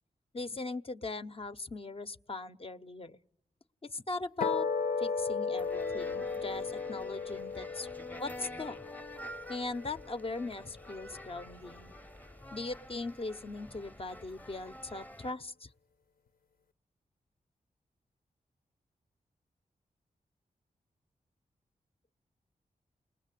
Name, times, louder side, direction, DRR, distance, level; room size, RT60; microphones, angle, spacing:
voice 1, 0.3-3.2 3.8-4.7 5.0-7.9 8.1-8.9 9.5-11.9 12.5-15.7, left 3 dB, 40° left, 10 dB, 0.9 m, -39 dB
sound 1, 4.4-10.9, left 5 dB, 80° left, 1.0 m, -36 dB
sound 2, 5.6-15.3, equal, 10° left, 0.9 m, -49 dB
29.0 x 20.5 x 8.4 m, 0.80 s
cardioid pair, 60°, 15 cm